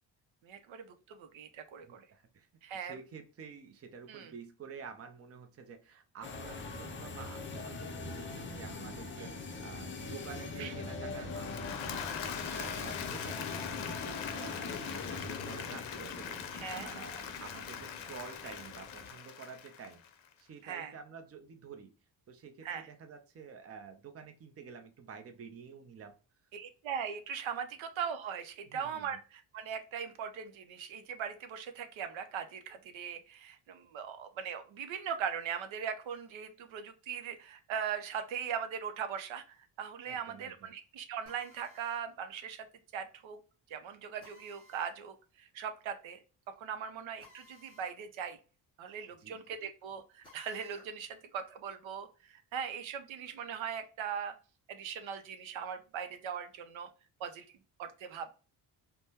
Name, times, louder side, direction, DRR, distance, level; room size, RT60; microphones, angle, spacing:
voice 1, 0.4-2.0 2.6-3.0 4.1-4.3 9.2-9.3 10.6-10.7 12.5-12.8 16.5-16.9 20.6-20.9 22.6-22.9 26.5-42.7 42.9-43.4 43.7-46.2 46.6-48.4 48.8-54.3 54.7-56.9 57.2-57.5 57.8-58.3, right 7 dB, 75° right, 8 dB, 0.6 m, -40 dB
voice 2, 1.8-2.5 2.7-16.4 16.8-20.0 20.4-21.9 22.3-26.2 28.7-29.1 40.1-40.7 49.2-49.4, right 6 dB, 30° right, 6 dB, 0.5 m, -50 dB
sound 1, 6.2-19.1, left 3 dB, 25° left, 0.5 m, -42 dB
Applause / Crowd, 11.2-20.3, left 8 dB, 75° left, 0.6 m, -42 dB
Drill, 41.3-42.1 44.2-45.0 47.2-48.0 48.3-48.4 50.2-50.9, left 1 dB, 10° left, 1.7 m, -58 dB
3.4 x 2.1 x 2.8 m, 0.34 s
cardioid pair, 105°, 47 cm